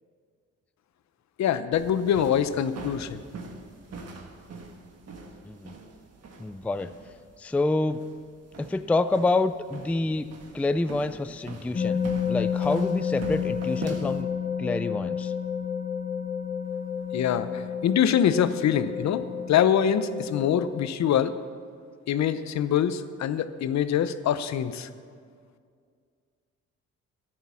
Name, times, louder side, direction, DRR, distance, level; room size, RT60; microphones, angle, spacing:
voice 1, 1.4-3.2 17.1-21.3 22.1-24.9, left 9 dB, 65° left, 12 dB, 0.8 m, -24 dB
sound 1, 1.7-14.2, right 3 dB, 55° right, 1.6 m, -43 dB
voice 2, 6.4-6.9 7.4-8.0 8.6-10.3 10.5-14.3 14.6-15.3, left 2 dB, 5° left, 12 dB, 0.3 m, -27 dB
sound 2, 11.7-20.9, left 7 dB, 30° left, 0.8 m, -30 dB
12.5 x 11.0 x 5.6 m, 2.1 s
cardioid pair, 90°, 30 cm